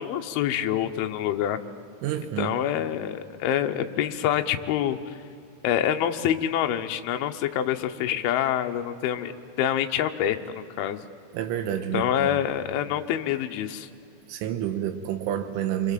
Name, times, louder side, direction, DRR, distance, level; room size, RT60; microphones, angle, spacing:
voice 1, 0.0-1.6 2.4-5.0 5.6-9.3 9.6-10.4 10.8-11.0 11.9-13.9, left 10 dB, 75° left, 5 dB, 2.4 m, -26 dB
voice 2, 2.0-2.6 11.3-12.4 14.3-15.9, right 10 dB, 90° right, 6 dB, 3.5 m, -29 dB
29.0 x 24.5 x 7.5 m, 2.5 s
omnidirectional pair, 5.5 m